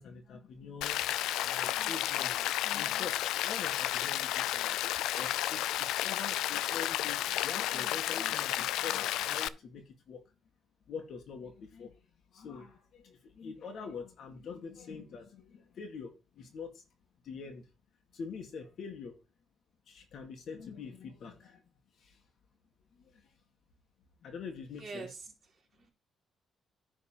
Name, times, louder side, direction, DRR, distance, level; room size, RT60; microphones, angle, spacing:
voice 1, 0.0-4.8 5.2-10.2 10.9-12.1 12.3-16.8 17.2-17.7 18.1-19.2 19.9-21.6 22.0-22.2 22.9-23.3 24.2-25.1, left 5 dB, 65° left, 2.0 m, -45 dB
Rain, 0.8-9.5, left 14 dB, 90° left, 0.4 m, -32 dB
voice 2, 24.8-25.9, right 4 dB, 40° right, 4.0 m, -46 dB
10.5 x 4.2 x 5.6 m
cardioid pair, 90°, 0 cm